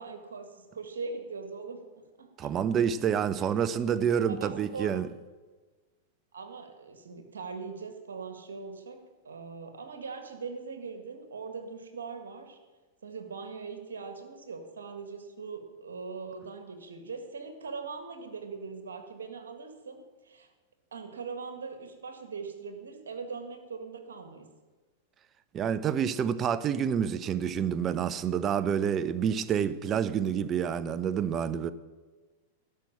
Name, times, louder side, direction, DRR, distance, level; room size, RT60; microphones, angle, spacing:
voice 1, 0.0-2.5 4.3-5.0 6.3-12.6 13.0-20.5 20.9-24.5, right 4 dB, 85° right, 1.8 m, -41 dB
voice 2, 2.4-5.1 25.5-31.7, right 8 dB, 30° right, 0.6 m, -28 dB
12.0 x 6.1 x 8.5 m
hypercardioid pair, 110°, 0 cm